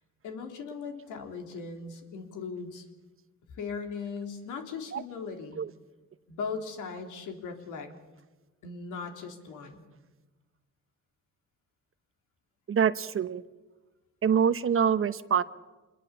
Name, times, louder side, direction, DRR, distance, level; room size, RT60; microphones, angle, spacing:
voice 1, 0.2-2.9 3.5-5.6 6.3-7.9 8.6-9.9, left 5 dB, 90° left, 4 dB, 3.4 m, -38 dB
voice 2, 12.7-13.4 14.2-15.4, right 7 dB, 45° right, 13 dB, 1.1 m, -25 dB
25.5 x 21.5 x 7.1 m, 1.2 s
cardioid pair, 90°, 30 cm